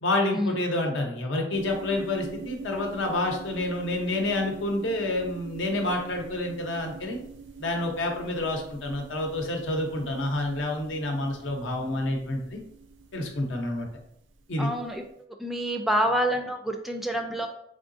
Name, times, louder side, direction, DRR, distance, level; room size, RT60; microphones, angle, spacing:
voice 1, 0.0-7.2 7.6-12.6 13.1-13.9 14.5-14.7, left 1 dB, 90° left, 2 dB, 0.8 m, -28 dB
sound 1, 1.5-14.9, right 5 dB, 80° right, 0.5 m, -45 dB
voice 2, 14.6-15.0 15.4-17.5, equal, ahead, 4 dB, 0.3 m, -27 dB
3.7 x 3.5 x 2.6 m, 0.73 s
head